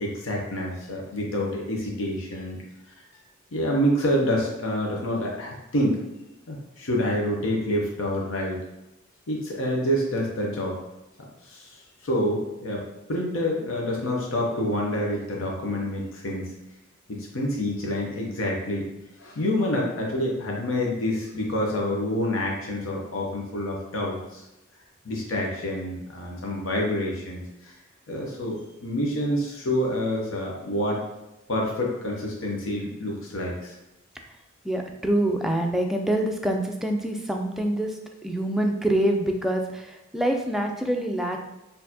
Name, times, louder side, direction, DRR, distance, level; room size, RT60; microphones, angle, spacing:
voice 1, 0.0-2.6 3.5-6.0 6.5-8.6 9.3-10.8 11.4-11.8 12.0-12.8 13.1-16.5 17.1-18.8 19.2-24.4 25.0-27.8 28.1-31.0 31.5-33.7, left 1 dB, 85° left, -2 dB, 0.7 m, -27 dB
voice 2, 34.7-37.9 38.2-41.4, right 1 dB, ahead, 2 dB, 0.3 m, -25 dB
4.2 x 2.7 x 2.8 m, 0.96 s
head